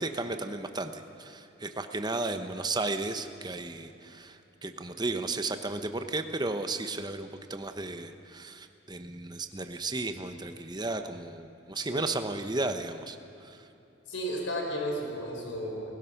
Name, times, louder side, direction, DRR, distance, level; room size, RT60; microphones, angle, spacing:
voice 1, 0.0-13.7, right 2 dB, 20° right, 8 dB, 0.9 m, -34 dB
voice 2, 11.7-12.1 14.1-15.9, equal, 80° left, 0 dB, 5.2 m, -34 dB
29.0 x 16.5 x 5.9 m, 3.0 s
head